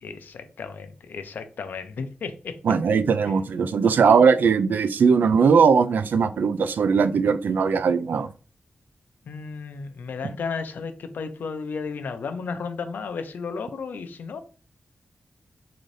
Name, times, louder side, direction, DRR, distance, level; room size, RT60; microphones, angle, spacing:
voice 1, 0.0-2.6 3.3-3.4 9.3-14.4, left 5 dB, 85° left, 0.5 m, -33 dB
voice 2, 2.6-8.3, right 6 dB, 80° right, 0.4 m, -19 dB
3.9 x 2.6 x 3.2 m
wide cardioid pair, 180°, 3 cm